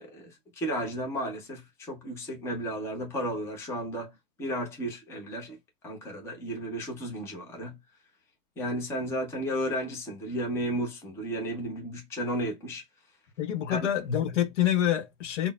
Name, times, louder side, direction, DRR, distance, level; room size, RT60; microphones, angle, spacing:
voice 1, 0.0-4.1 4.4-5.6 5.8-7.8 8.6-12.8 13.7-13.9, right 1 dB, 5° left, 0.6 m, -33 dB
voice 2, 13.4-15.5, left 11 dB, 50° left, 0.9 m, -27 dB
3.8 x 2.1 x 2.2 m
hypercardioid pair, 120°, 47 cm